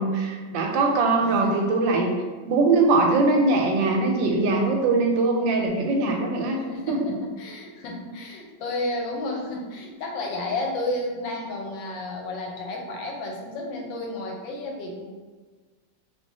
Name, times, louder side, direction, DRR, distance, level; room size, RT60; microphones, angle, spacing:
voice 1, 0.0-2.1 2.4-6.6 6.9-7.1, right 3 dB, 80° right, 2 dB, 1.2 m, -22 dB
voice 2, 1.2-1.7 6.7-15.0, left 2 dB, 80° left, 1 dB, 1.3 m, -32 dB
3.4 x 3.0 x 2.7 m, 1.4 s
omnidirectional pair, 2.0 m